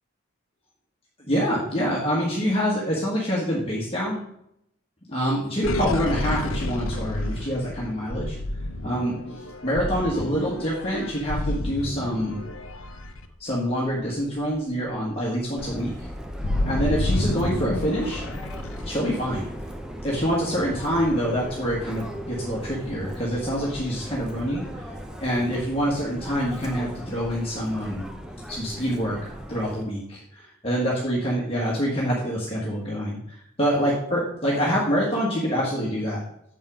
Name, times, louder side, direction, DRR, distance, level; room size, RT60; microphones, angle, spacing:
voice 1, 1.3-4.2 5.1-8.4 8.8-12.4 13.4-16.1 16.6-18.2 18.8-19.5 20.0-24.8 25.2-28.1 28.5-36.2, equal, 30° left, -5 dB, 1.5 m, -26 dB
sound 1, 5.6-14.0 14.4-14.6 14.9-19.0, left 1 dB, 90° left, 0.7 m, -30 dB
Subway metro underground, 15.6-29.8, equal, 5° right, 0.6 m, -38 dB
7.3 x 5.4 x 5.0 m, 0.76 s
head